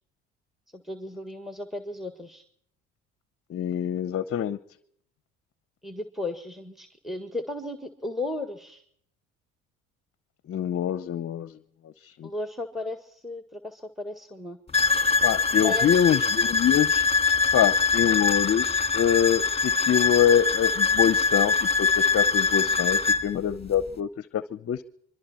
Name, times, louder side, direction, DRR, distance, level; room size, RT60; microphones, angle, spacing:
voice 1, 0.7-2.4 5.8-8.8 12.2-14.6 15.6-16.1, left 2 dB, ahead, 9 dB, 1.7 m, -35 dB
voice 2, 3.5-4.6 10.5-11.6 12.0-12.3 15.2-17.1 17.5-24.8, left 9 dB, 40° left, 16 dB, 0.8 m, -25 dB
sound 1, 14.7-23.3, left 4 dB, 15° left, 1.9 m, -23 dB
25.5 x 23.5 x 4.4 m, 0.66 s
hypercardioid pair, 70°, 34 cm